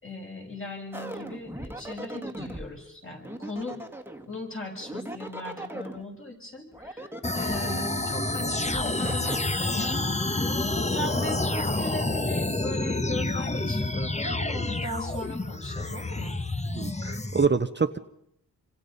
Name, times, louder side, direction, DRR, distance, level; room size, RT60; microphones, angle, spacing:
voice 1, 0.0-3.8 4.3-10.6 10.9-16.4, left 1 dB, 35° left, 0 dB, 6.8 m, -38 dB
sound 1, 0.9-2.7 3.2-4.3 4.8-6.0 6.7-8.0 8.6-9.4, right 1 dB, 5° right, 1.8 m, -38 dB
sound 2, 7.2-17.5, left 2 dB, 20° left, 1.2 m, -28 dB
voice 2, 16.7-18.0, right 5 dB, 30° right, 10 dB, 0.8 m, -26 dB
27.0 x 25.5 x 5.4 m, 0.74 s
wide cardioid pair, 95°, 35 cm